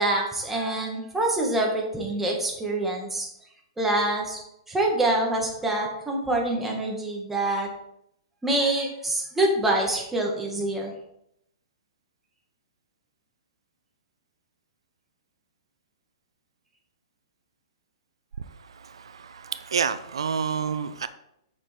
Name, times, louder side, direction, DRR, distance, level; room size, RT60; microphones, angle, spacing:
voice 1, 0.0-3.3 3.8-4.4 4.7-7.7 8.4-10.9, right 1 dB, 10° right, 2.0 m, -25 dB
voice 2, 19.3-21.1, right 6 dB, 85° right, 0.5 m, -28 dB
7.4 x 6.4 x 3.7 m
hypercardioid pair, 130°, 3 cm